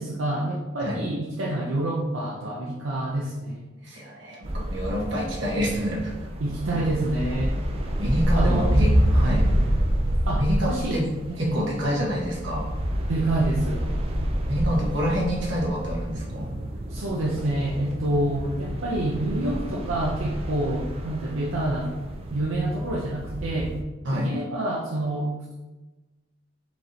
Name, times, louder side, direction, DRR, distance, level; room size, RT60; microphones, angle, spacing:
voice 1, 0.0-3.6 6.4-7.5 8.3-8.7 9.2-9.5 10.3-11.6 13.1-13.8 16.9-22.0 22.3-23.7 24.1-25.5, right 1 dB, 85° right, -3 dB, 0.6 m, -27 dB
voice 2, 3.8-6.3 6.7-6.9 8.0-9.4 10.3-11.1 11.4-12.7 14.5-16.5 24.0-24.3, equal, 65° right, -3 dB, 1.2 m, -27 dB
sound 1, 4.4-23.8, equal, 30° right, 0.4 m, -28 dB
4.6 x 3.8 x 2.7 m, 1.1 s
head